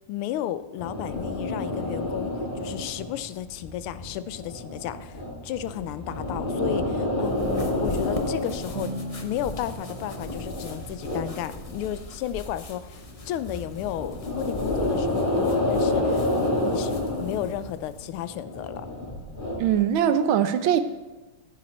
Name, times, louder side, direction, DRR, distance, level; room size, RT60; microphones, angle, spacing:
voice 1, 0.1-16.3 16.6-18.9, left 11 dB, 85° left, 13 dB, 1.5 m, -33 dB
sound 1, 0.8-12.3 12.6-19.8, left 1 dB, 25° left, 2.4 m, -29 dB
sound 2, 6.3-12.3, right 3 dB, 45° right, 1.2 m, -40 dB
sound 3, 7.2-18.1, left 3 dB, 60° left, 0.3 m, -41 dB
voice 2, 19.6-20.8, right 9 dB, 75° right, 11 dB, 1.5 m, -21 dB
14.0 x 9.4 x 4.3 m, 1.2 s
omnidirectional pair, 2.4 m